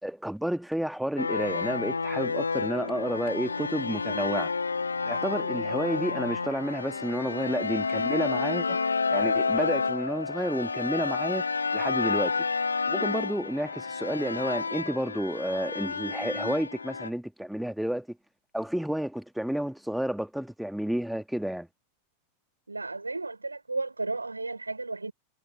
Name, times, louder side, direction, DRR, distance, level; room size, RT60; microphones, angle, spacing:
voice 1, 0.0-4.5 5.0-8.8 9.1-11.5 11.7-12.4 12.9-18.2 18.5-21.7, equal, ahead, 2.0 m, -31 dB
sound 1, 1.2-17.1, left 4 dB, 75° left, 0.8 m, -30 dB
voice 2, 22.7-25.1, right 3 dB, 80° right, 5.6 m, -33 dB
figure-of-eight pair, 90°, 0 cm